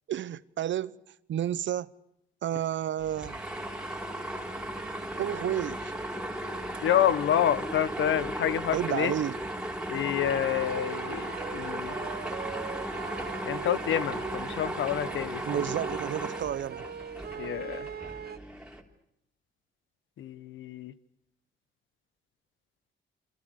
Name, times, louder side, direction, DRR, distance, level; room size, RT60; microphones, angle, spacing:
voice 1, 0.1-1.0 1.3-1.9 2.4-3.4 5.2-5.9 8.7-9.4 15.4-16.8, right 10 dB, 70° right, 0.9 m, -31 dB
sound 1, 3.0-18.8, right 1 dB, 5° right, 3.6 m, -36 dB
voice 2, 6.8-9.1 9.9-11.3 11.5-11.9 13.4-15.4 17.4-17.9 20.2-20.9, left 10 dB, 80° left, 1.3 m, -28 dB
sound 2, 10.2-18.4, right 8 dB, 55° right, 1.1 m, -41 dB
27.5 x 26.0 x 6.5 m
cardioid pair, 100°, 20 cm